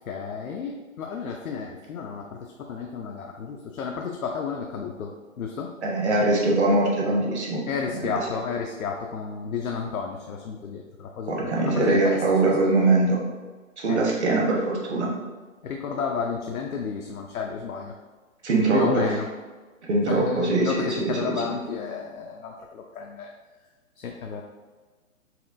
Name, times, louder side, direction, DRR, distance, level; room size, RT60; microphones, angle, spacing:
voice 1, 0.1-5.7 7.7-12.8 13.9-14.0 15.6-17.9 18.7-19.3 20.1-23.3 24.0-24.4, left 6 dB, 80° left, 1 dB, 0.5 m, -32 dB
voice 2, 5.8-7.6 8.0-8.1 11.3-13.2 13.8-15.1 18.4-19.0 19.9-21.4, right 2 dB, 50° right, -2 dB, 1.0 m, -22 dB
4.2 x 2.3 x 2.5 m, 1.4 s
figure-of-eight pair, 145°, 42 cm